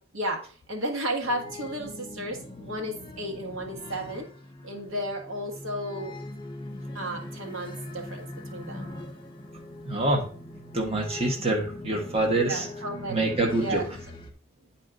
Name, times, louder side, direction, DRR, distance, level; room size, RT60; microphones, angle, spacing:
voice 1, 0.7-4.3 4.6-6.2 6.9-8.9 12.3-14.0, right 1 dB, 80° right, 2 dB, 1.6 m, -33 dB
sound 1, 1.2-14.3, left 1 dB, 25° left, 1.0 m, -41 dB
voice 2, 9.9-10.2 10.7-12.7 13.1-13.8, right 2 dB, 30° right, 1 dB, 1.3 m, -26 dB
9.8 x 4.3 x 3.9 m, 0.41 s
head